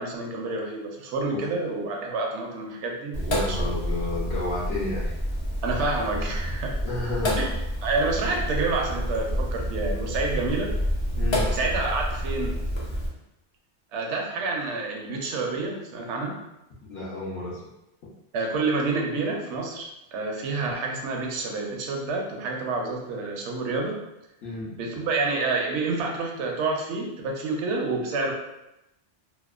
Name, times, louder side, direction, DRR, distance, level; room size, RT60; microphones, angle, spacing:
voice 1, 0.0-3.7 5.6-6.8 7.4-7.5 7.8-10.7 11.5-12.6 13.9-16.4 18.3-23.9 24.6-28.3, right 3 dB, 85° right, 0 dB, 0.9 m, -28 dB
Sink (filling or washing), 3.1-13.1, equal, 50° left, 0.3 m, -28 dB
voice 2, 3.3-5.1 6.8-7.4 11.2-11.5 16.8-17.6 24.4-24.7, left 2 dB, 70° left, -8 dB, 0.9 m, -31 dB
2.7 x 2.1 x 2.3 m, 0.90 s
omnidirectional pair, 1.1 m